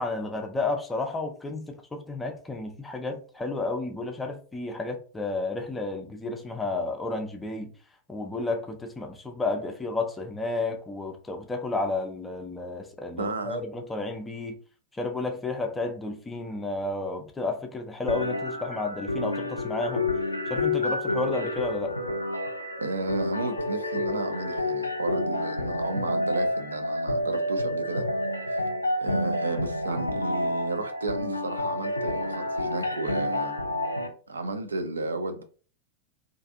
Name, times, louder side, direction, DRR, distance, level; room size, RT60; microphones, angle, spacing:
voice 1, 0.0-7.7 8.1-14.6 14.9-20.1 20.5-22.0, left 3 dB, 10° left, 0.5 m, -32 dB
voice 2, 13.2-13.6 22.8-28.1 28.5-28.7 29.0-33.6 34.3-35.4, right 2 dB, 75° right, 0.4 m, -33 dB
sound 1, 18.1-34.1, left 1 dB, 85° left, 0.3 m, -29 dB
2.5 x 2.4 x 2.4 m
figure-of-eight pair, 90°, 0 cm